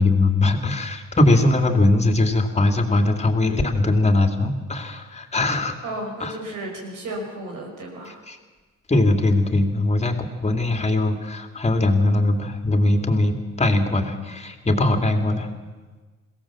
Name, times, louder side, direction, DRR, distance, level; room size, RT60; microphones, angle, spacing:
voice 1, 0.0-5.7 6.2-6.3 8.3-8.4 8.9-10.2 10.4-15.5, left 2 dB, 20° left, 6 dB, 2.6 m, -20 dB
voice 2, 5.8-8.2, right 1 dB, 90° right, 1 dB, 6.1 m, -33 dB
22.0 x 16.5 x 7.4 m, 1.3 s
cardioid pair, 90°, 30 cm